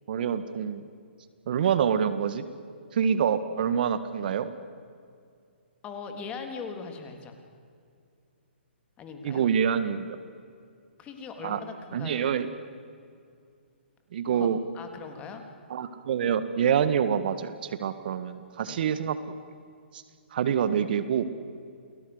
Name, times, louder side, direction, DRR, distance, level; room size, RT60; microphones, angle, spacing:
voice 1, 0.1-0.8 1.5-2.4 2.9-4.5 9.2-10.2 11.4-11.6 11.9-12.5 14.1-14.6 15.7-19.3 19.9-20.0 20.3-21.2, right 8 dB, 55° right, 13 dB, 1.7 m, -26 dB
voice 2, 5.8-7.3 9.0-9.4 11.0-12.4 14.3-15.4 18.6-18.9, left 5 dB, 20° left, 5 dB, 3.5 m, -40 dB
29.5 x 20.5 x 8.1 m, 2.3 s
hypercardioid pair, 135°, 6 cm